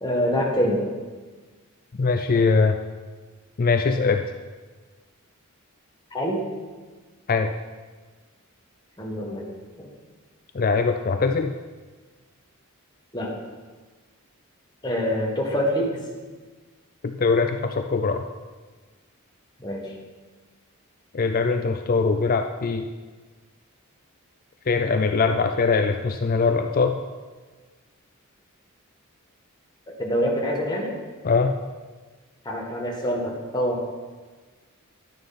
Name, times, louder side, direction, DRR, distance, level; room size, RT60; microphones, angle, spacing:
voice 1, 0.0-1.0 6.1-6.4 9.0-9.4 13.1-13.3 14.8-16.0 19.6-19.9 30.0-31.0 32.5-33.8, equal, 20° left, -2 dB, 1.8 m, -25 dB
voice 2, 2.0-2.8 3.6-4.2 7.3-7.5 10.5-11.5 17.0-18.3 21.1-22.9 24.7-27.0 31.2-31.5, left 4 dB, 40° left, 6 dB, 0.5 m, -22 dB
11.5 x 9.4 x 4.3 m, 1.4 s
head